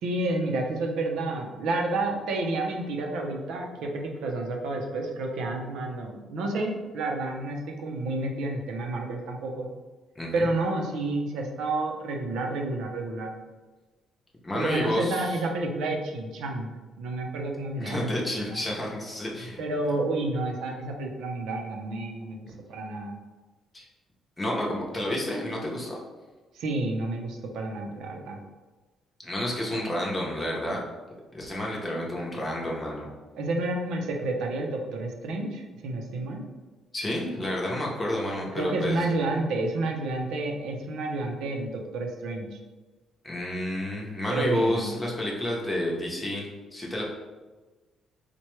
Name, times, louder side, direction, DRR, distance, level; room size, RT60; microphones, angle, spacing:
voice 1, 0.0-9.7 10.3-13.3 14.5-16.7 17.0-18.1 18.4-18.6 19.6-23.1 26.5-28.4 33.3-36.4 38.5-42.6 44.3-44.9, right 2 dB, 85° right, 1 dB, 0.5 m, -30 dB
voice 2, 10.2-10.5 14.4-15.4 17.8-19.6 19.9-20.0 23.7-23.9 24.4-26.0 29.2-30.8 31.3-33.1 36.9-39.1 43.2-47.0, left 1 dB, 15° left, -3 dB, 0.7 m, -30 dB
4.3 x 2.2 x 3.0 m, 1.2 s
cardioid pair, 140°, 0 cm